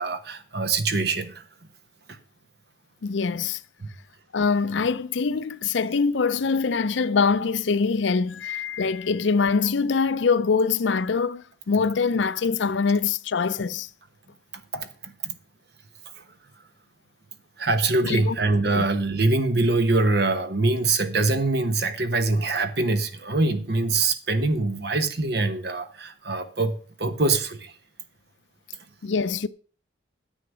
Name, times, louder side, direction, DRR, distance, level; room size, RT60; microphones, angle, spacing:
voice 1, 0.0-1.4 2.1-2.2 3.8-3.9 14.5-15.3 16.1-16.2 17.6-27.7, right 3 dB, 55° right, 1.1 m, -24 dB
voice 2, 3.0-3.6 4.3-13.9 18.0-18.3 18.7-18.9 29.0-29.5, left 5 dB, 70° left, 0.5 m, -24 dB
10.0 x 7.8 x 6.1 m
head